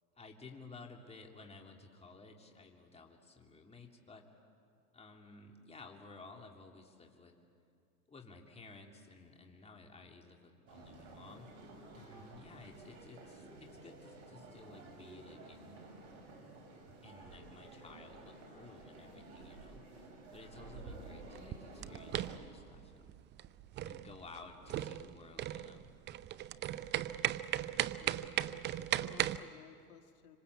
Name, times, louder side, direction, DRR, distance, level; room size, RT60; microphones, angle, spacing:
voice 1, 0.1-4.2 4.9-7.3 8.1-11.5 11.9-15.8 17.0-23.1 23.8-25.9, left 3 dB, 15° left, 2 dB, 3.1 m, -55 dB
sound 1, 10.7-22.4, right 2 dB, 55° right, 6.3 m, -53 dB
sound 2, 21.3-29.4, right 13 dB, 25° right, 0.6 m, -37 dB
voice 2, 27.2-28.6 29.0-30.4, left 9 dB, 70° left, 7 dB, 1.9 m, -59 dB
26.0 x 26.0 x 8.4 m, 2.4 s
hypercardioid pair, 110°, 46 cm